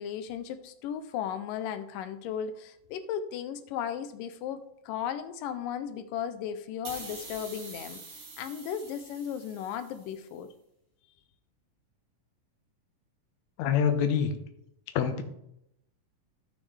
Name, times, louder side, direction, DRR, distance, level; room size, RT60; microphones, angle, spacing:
voice 1, 0.0-10.5, left 8 dB, 85° left, 10 dB, 2.3 m, -36 dB
sound 1, 6.8-10.2, right 3 dB, 50° right, 3.4 m, -46 dB
voice 2, 13.6-14.3 14.9-15.2, left 8 dB, 70° left, 6 dB, 2.0 m, -25 dB
15.0 x 6.2 x 3.3 m, 0.80 s
omnidirectional pair, 3.8 m